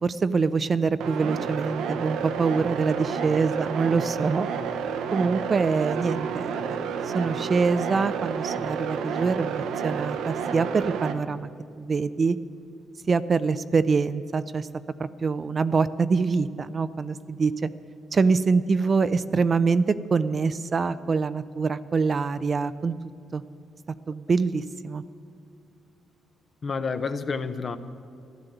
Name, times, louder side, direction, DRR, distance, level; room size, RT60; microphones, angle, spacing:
voice 1, 0.0-4.5 5.1-6.8 7.0-11.5 11.8-12.4 13.1-14.7 15.0-17.7 18.1-22.9 23.3-23.4 24.1-25.0, right 4 dB, 40° right, 14 dB, 0.5 m, -25 dB
sound 1, 1.0-11.1, right 6 dB, 85° right, 0.9 m, -30 dB
voice 2, 26.6-27.8, left 5 dB, 40° left, 10 dB, 0.9 m, -29 dB
13.5 x 11.5 x 8.0 m, 2.5 s
cardioid pair, 90°, 0 cm